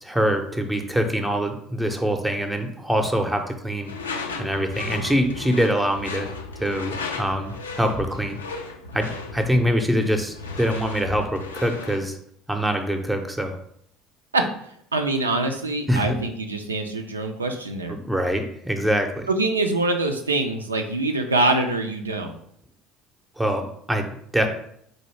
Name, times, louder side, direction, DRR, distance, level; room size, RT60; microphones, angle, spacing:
voice 1, 0.0-3.9 4.4-6.3 6.6-8.4 8.9-12.2 12.5-13.6 15.9-16.2 17.9-19.3 23.4-24.5, equal, 5° right, 4 dB, 0.6 m, -24 dB
Door / Screech, 3.8-12.1, left 4 dB, 80° left, 0.4 m, -35 dB
voice 2, 14.9-18.0 19.3-22.4, right 2 dB, 85° right, 5 dB, 0.3 m, -24 dB
4.1 x 2.7 x 3.1 m, 0.67 s
figure-of-eight pair, 65°, 0 cm